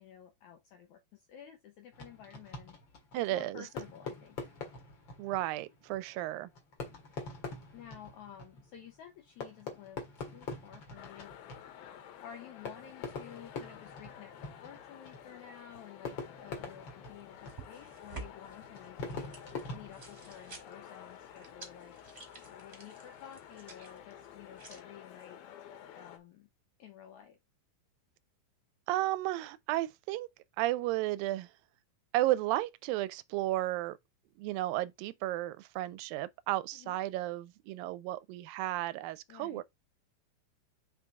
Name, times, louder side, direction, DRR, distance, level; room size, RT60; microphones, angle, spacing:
voice 1, 0.0-2.8 3.1-4.5 7.7-11.3 12.2-19.3 19.7-22.0 22.5-25.4 26.0-26.5 26.8-27.4 36.7-37.0 39.3-39.6, left 9 dB, 70° left, 1.9 m, -52 dB
Fireworks, 1.9-20.7, left 4 dB, 40° left, 2.0 m, -45 dB
voice 2, 3.1-3.7 5.2-6.5 28.9-30.3 30.6-31.5 32.1-34.0 34.4-39.6, right 16 dB, 80° right, 2.2 m, -33 dB
sound 1, 11.0-26.2, left 10 dB, 85° left, 2.9 m, -52 dB
Gushing of Flesh & Blood during Stabbing, 17.1-24.8, right 4 dB, 25° right, 1.7 m, -52 dB
6.1 x 5.0 x 3.6 m
omnidirectional pair, 4.2 m